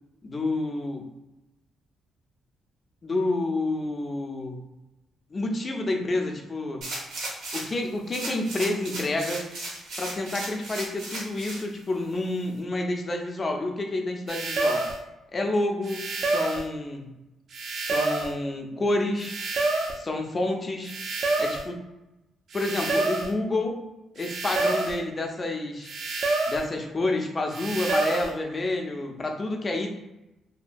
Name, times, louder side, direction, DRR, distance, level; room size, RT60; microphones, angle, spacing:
voice 1, 0.2-1.1 3.0-4.6 5.3-6.9 7.5-9.4 10.0-14.9 15.3-17.1 17.8-19.3 19.9-21.0 21.4-21.8 22.5-23.8 24.2-25.9 26.5-29.9, left 2 dB, 30° left, 2 dB, 0.5 m, -29 dB
sound 1, 6.8-7.8 8.1-11.6 12.1-12.2, right 2 dB, 85° right, 0.8 m, -36 dB
sound 2, 14.3-15.0 15.8-16.7 17.5-18.3 19.2-20.0 20.8-21.7 22.5-23.3 24.2-25.0 25.8-26.7 27.5-28.3, right 2 dB, 60° right, 0.4 m, -27 dB
2.8 x 2.2 x 2.5 m, 0.96 s
cardioid pair, 90°, 0 cm